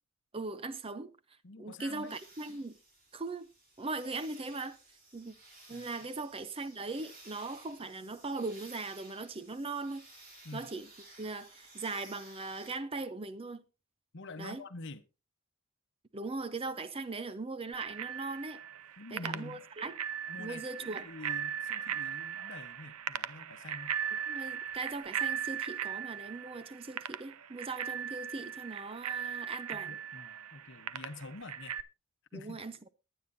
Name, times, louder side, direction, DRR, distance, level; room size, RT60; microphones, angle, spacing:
voice 1, 0.3-1.1 1.6-2.8 3.1-3.5 3.8-4.8 5.1-5.3 5.7-10.1 10.5-10.9 11.2-13.6 14.4-14.6 16.1-18.6 19.1-20.0 20.4-21.1 24.3-30.0 32.3-32.9, right 3 dB, 25° right, 0.6 m, -39 dB
voice 2, 1.4-2.1 5.7-5.9 10.4-10.7 14.1-15.0 19.0-19.6 20.3-24.0 29.7-31.8 32.3-32.6, left 2 dB, 55° left, 0.9 m, -47 dB
sound 1, 2.0-12.7, right 2 dB, 40° right, 5.6 m, -56 dB
Bicycle bell, 17.7-31.8, right 8 dB, 85° right, 0.6 m, -38 dB
21.5 x 9.0 x 2.7 m
head